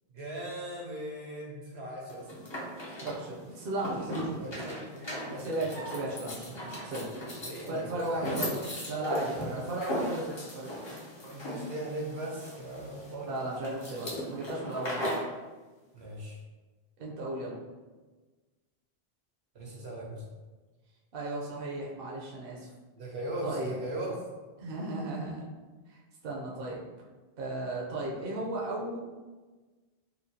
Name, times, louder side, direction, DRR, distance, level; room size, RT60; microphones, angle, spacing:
voice 1, 0.1-2.3 4.4-5.5 7.4-8.5 11.2-13.3 15.9-16.4 19.5-20.2 22.9-24.2, right 1 dB, 80° right, -2 dB, 1.1 m, -39 dB
sound 1, 2.1-15.3, equal, 30° left, 0.6 m, -38 dB
voice 2, 3.0-4.7 5.3-7.1 7.7-8.5 8.9-10.8 13.2-15.1 17.0-17.6 21.1-22.7 23.4-23.8 24.6-25.4 25.9-26.8 27.4-29.0, right 2 dB, 65° right, -4 dB, 0.8 m, -35 dB
4.3 x 2.3 x 2.7 m, 1.3 s
omnidirectional pair, 1.1 m